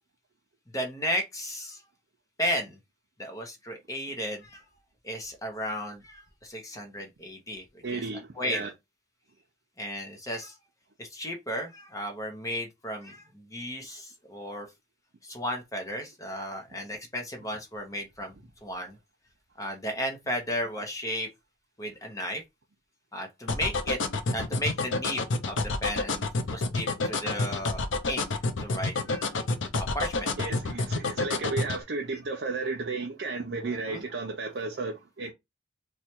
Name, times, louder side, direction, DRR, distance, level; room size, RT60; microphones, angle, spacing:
voice 1, 0.7-1.8 2.4-2.8 3.2-4.6 5.0-7.6 7.9-8.0 8.4-8.7 9.8-10.5 11.0-14.7 15.2-18.3 18.6-19.0 19.6-21.3 21.8-22.4 23.1-24.0 24.3-26.2 26.5-28.3 28.6-29.5 29.8-30.3 32.1-32.2 33.6-34.0, equal, 20° left, 0.8 m, -34 dB
voice 2, 7.8-8.7 30.4-35.3, right 3 dB, 65° right, 0.6 m, -33 dB
sound 1, 23.5-31.8, left 3 dB, 85° left, 0.6 m, -28 dB
3.1 x 2.3 x 4.3 m
head